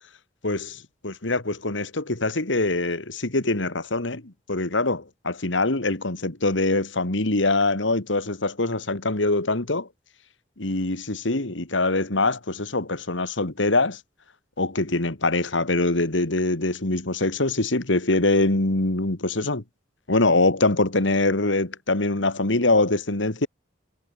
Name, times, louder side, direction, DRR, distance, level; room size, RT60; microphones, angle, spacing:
voice 1, 0.4-9.9 10.6-14.0 14.6-19.6 20.1-23.5, left 2 dB, 75° left, 2.3 m, -23 dB
head